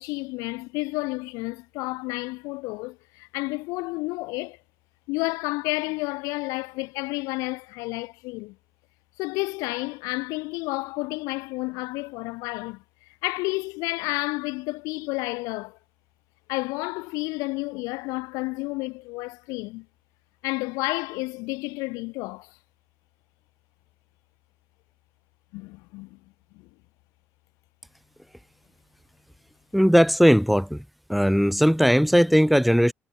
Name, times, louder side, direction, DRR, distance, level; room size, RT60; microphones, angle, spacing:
voice 1, 0.0-4.6 5.1-8.6 9.2-12.8 13.2-15.8 16.5-19.9 20.4-22.6 25.5-26.2, left 25 dB, 80° left, 1.8 m, -31 dB
voice 2, 29.7-30.8 31.1-32.9, equal, ahead, 0.4 m, -18 dB
hypercardioid pair, 55°, 6 cm